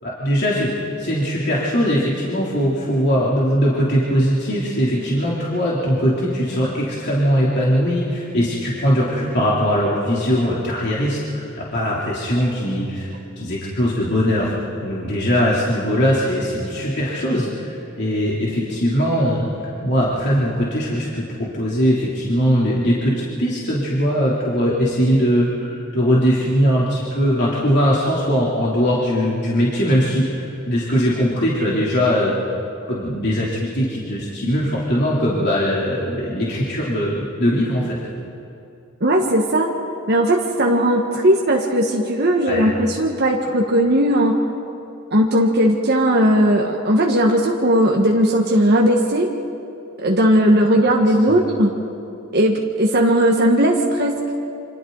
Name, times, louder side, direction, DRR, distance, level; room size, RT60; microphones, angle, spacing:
voice 1, 0.0-11.4 11.7-13.1 13.4-14.5 14.8-19.5 19.8-32.3 32.9-38.0 42.4-42.7 51.3-51.4, equal, 55° left, -6 dB, 3.3 m, -20 dB
voice 2, 39.0-39.7 40.1-44.4 45.1-49.3 50.0-51.7 52.3-54.2, equal, 55° right, 0 dB, 1.6 m, -17 dB
28.5 x 26.5 x 4.0 m, 2.8 s
head